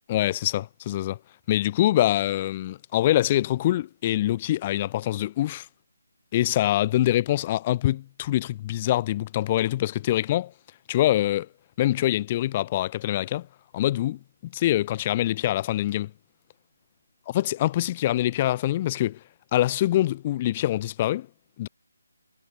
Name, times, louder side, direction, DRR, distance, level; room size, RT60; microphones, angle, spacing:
voice 1, 0.1-1.2 1.5-5.7 6.3-10.5 10.9-11.5 11.8-13.5 13.7-16.1 17.3-19.2 19.5-21.3 21.6-21.7, left 14 dB, 30° left, 7.1 m, -24 dB
figure-of-eight pair, 150°, 0 cm